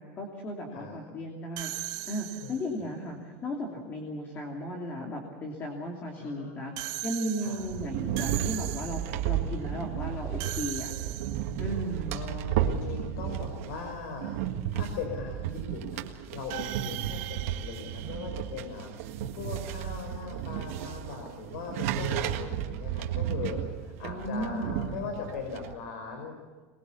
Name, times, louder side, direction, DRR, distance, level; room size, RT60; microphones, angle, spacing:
voice 1, 0.0-10.9 11.6-12.2 24.0-24.9, equal, 25° left, 1 dB, 2.8 m, -36 dB
sound 1, 1.6-2.8 6.8-9.3 10.4-11.7 16.5-19.0, right 18 dB, 50° right, 0.9 m, -39 dB
voice 2, 6.2-6.9 7.4-7.6 12.1-16.1 16.3-26.4, left 5 dB, 75° left, 4 dB, 5.1 m, -39 dB
sound 2, 7.6-25.7, right 10 dB, 70° right, 1.8 m, -33 dB
23.5 x 21.5 x 7.2 m, 1.4 s
supercardioid pair, 160°, 8 cm